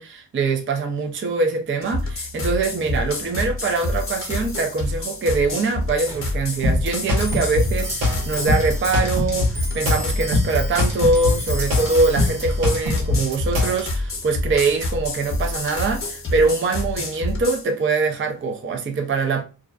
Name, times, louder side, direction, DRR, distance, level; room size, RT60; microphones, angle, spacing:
voice 1, 0.0-19.4, right 3 dB, 30° right, 0.5 m, -23 dB
sound 1, 1.8-17.7, left 2 dB, 30° left, 0.8 m, -28 dB
Clock, 6.1-15.9, equal, 5° right, 0.9 m, -37 dB
sound 2, 6.6-13.8, left 2 dB, 85° right, 1.0 m, -22 dB
2.4 x 2.1 x 2.4 m
cardioid pair, 55°, 45 cm